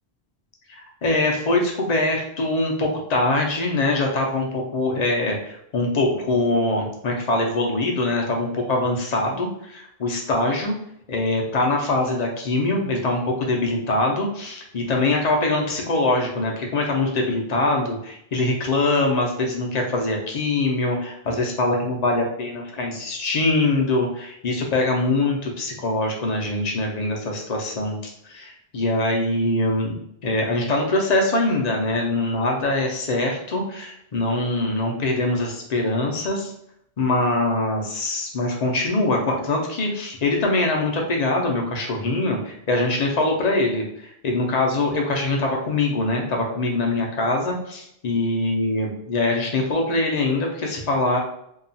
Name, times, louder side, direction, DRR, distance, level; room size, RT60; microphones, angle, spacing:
voice 1, 0.7-10.7 11.1-30.0 30.2-36.5 37.0-51.2, left 2 dB, 50° left, 0 dB, 0.6 m, -23 dB
2.8 x 2.3 x 2.6 m, 0.75 s
omnidirectional pair, 1.1 m